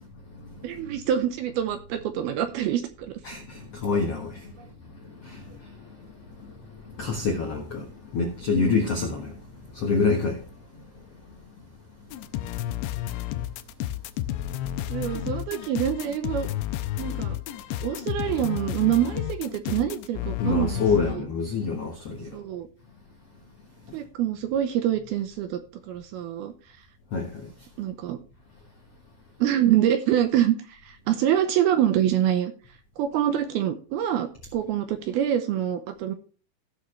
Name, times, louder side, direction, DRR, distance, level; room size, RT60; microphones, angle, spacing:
voice 1, 0.6-3.2 8.5-8.8 14.9-16.5 17.0-17.4 17.8-21.3 22.3-22.7 23.9-25.6 25.9-26.5 27.8-28.2 29.4-32.5 33.0-36.1, right 11 dB, 75° right, 2.4 m, -25 dB
voice 2, 3.2-4.5 5.0-5.9 6.9-7.9 8.1-9.4 9.7-10.4 20.4-22.3 27.1-27.5, left 4 dB, 70° left, 1.5 m, -27 dB
sound 1, 12.1-21.2, left 13 dB, 85° left, 3.0 m, -31 dB
17.0 x 6.4 x 3.2 m
omnidirectional pair, 5.0 m